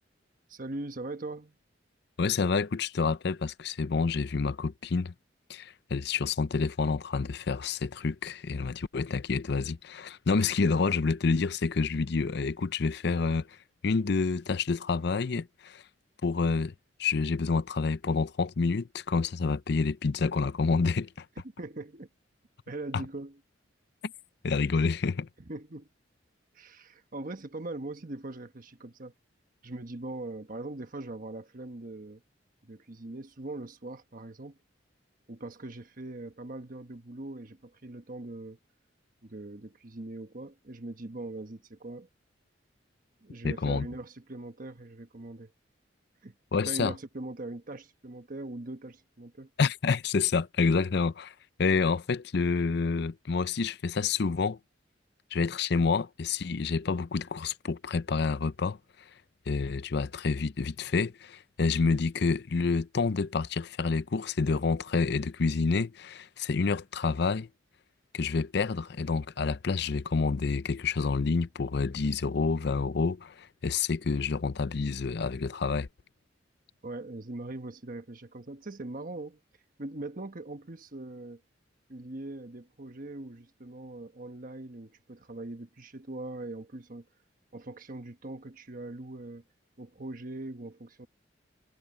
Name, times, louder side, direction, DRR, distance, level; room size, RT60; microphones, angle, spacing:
voice 1, 0.5-1.5 21.4-22.1 22.7-23.4 25.4-25.9 26.5-29.1 29.6-32.2 32.6-34.6 35.3-38.6 39.2-42.1 43.2-45.5 46.2-46.4 46.7-49.5 76.8-79.4 79.8-81.4 81.9-87.0 87.5-89.4 89.8-91.1, right 2 dB, 45° right, 1.2 m, -41 dB
voice 2, 2.2-5.1 5.5-13.5 13.8-15.8 16.2-16.7 17.0-21.2 24.4-25.3 43.4-43.9 46.5-46.9 49.6-51.3 51.6-54.6 55.3-58.8 59.5-67.5 68.1-75.9, left 4 dB, 60° left, 0.5 m, -28 dB
head